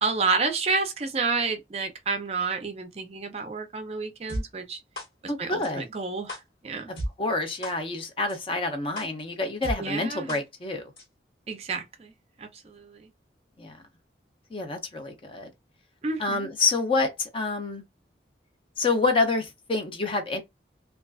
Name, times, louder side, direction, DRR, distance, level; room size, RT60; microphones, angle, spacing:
voice 1, 0.0-4.8 5.4-6.4 6.6-6.9 9.8-10.4 11.5-12.1 12.4-13.1 16.0-16.5, right 4 dB, 35° right, 0.4 m, -30 dB
sound 1, 4.3-4.4 5.0-5.1 5.6-5.7 6.3-6.4 7.0-7.1 7.6-7.7 8.3-8.4 9.0-9.1 9.6-9.7 10.3-10.4 11.0-11.1, equal, 60° left, 1.3 m, -32 dB
voice 2, 5.3-5.8 7.2-10.9 13.6-13.8 14.5-15.5 16.2-17.8 18.8-20.4, left 3 dB, 30° left, 0.4 m, -27 dB
2.3 x 2.3 x 2.3 m
head